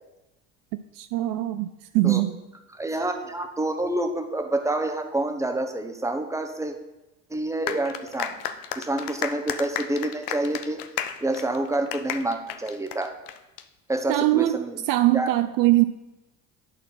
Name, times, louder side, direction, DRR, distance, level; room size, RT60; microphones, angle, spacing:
voice 1, 1.0-1.7 1.9-2.4 14.1-15.8, right 16 dB, 55° right, 10 dB, 0.5 m, -22 dB
voice 2, 2.7-6.7 7.3-8.3 8.7-10.8 11.2-13.1 13.9-14.8 15.1-15.3, right 2 dB, 10° right, 5 dB, 1.1 m, -28 dB
sound 1, 7.7-13.6, left 10 dB, 65° left, 0.7 m, -33 dB
10.5 x 4.3 x 5.9 m, 0.98 s
hypercardioid pair, 70°, 39 cm